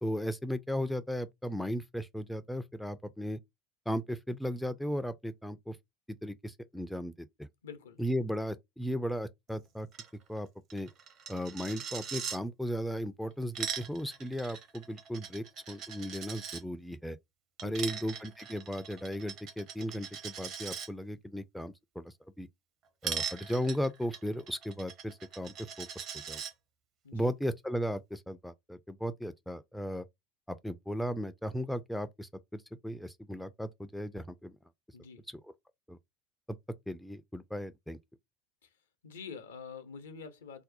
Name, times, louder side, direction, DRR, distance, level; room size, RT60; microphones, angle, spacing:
voice 1, 0.0-3.4 3.9-5.8 6.1-7.5 8.0-9.9 10.3-10.9 11.3-17.2 17.6-22.5 23.0-26.4 27.1-30.1 30.5-34.6 35.3-35.4 35.9-36.0 36.9-38.0, equal, ahead, 0.3 m, -36 dB
voice 2, 7.6-8.0 17.6-18.0 27.0-27.3 34.9-35.2 38.6-38.7 39.0-40.6, left 6 dB, 70° left, 0.5 m, -46 dB
Coin (dropping), 9.9-10.1 10.4-10.5 10.7-12.4 13.3-16.6 17.6-20.9 23.0-26.5, right 7 dB, 45° right, 0.6 m, -40 dB
2.7 x 2.0 x 3.9 m
figure-of-eight pair, 75°, 0 cm